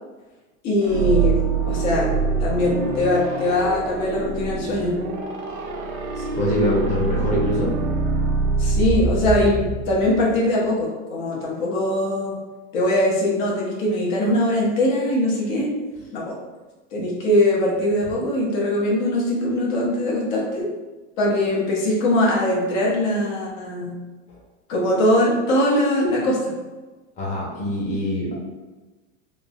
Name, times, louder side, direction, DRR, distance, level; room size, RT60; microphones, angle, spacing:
voice 1, 0.6-1.4 1.7-2.1 2.4-5.0 8.6-12.4 12.7-15.7 16.1-16.4 16.9-20.7 21.2-24.0 24.7-26.6, left 1 dB, 70° left, -4 dB, 1.1 m, -21 dB
sound 1, 0.8-10.5, right 4 dB, 85° right, 0.8 m, -25 dB
voice 2, 6.2-7.7 24.3-24.4 27.2-28.4, equal, 15° left, -5 dB, 0.7 m, -24 dB
3.5 x 2.2 x 2.3 m, 1.2 s
supercardioid pair, 130°, 41 cm